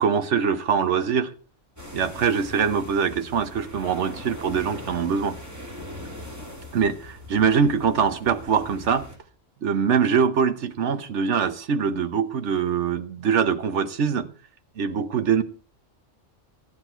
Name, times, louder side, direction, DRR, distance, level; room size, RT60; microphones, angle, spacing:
voice 1, 0.0-1.3 1.9-5.4 6.7-9.1 9.6-14.3 14.8-15.4, right 6 dB, 75° right, 1.3 m, -23 dB
sound 1, 1.8-9.2, left 1 dB, 15° right, 3.1 m, -41 dB
13.5 x 10.0 x 4.5 m
omnidirectional pair, 1.2 m